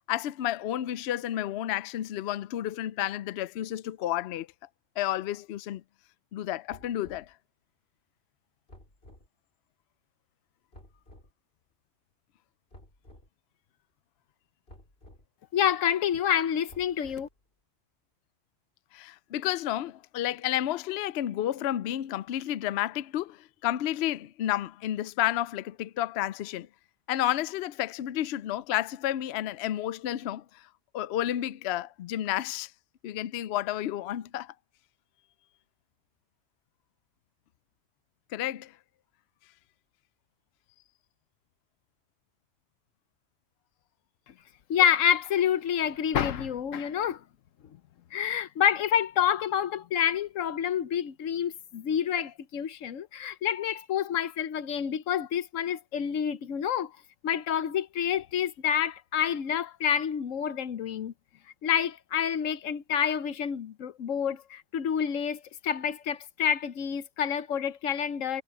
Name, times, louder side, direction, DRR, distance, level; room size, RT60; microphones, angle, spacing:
voice 1, 0.1-4.5 5.0-5.8 6.3-7.3 18.9-26.7 27.1-30.7 30.9-32.7 33.0-34.5 38.3-38.7, left 13 dB, 65° left, 0.7 m, -31 dB
sound 1, 6.7-7.3 8.7-9.3 10.7-11.3 12.7-13.3 14.7-15.2 16.7-17.4, left 1 dB, 50° left, 5.9 m, -53 dB
voice 2, 15.5-17.3 44.7-47.2 48.1-56.9 57.2-61.1 61.6-68.4, left 9 dB, 80° left, 1.2 m, -28 dB
omnidirectional pair, 1.3 m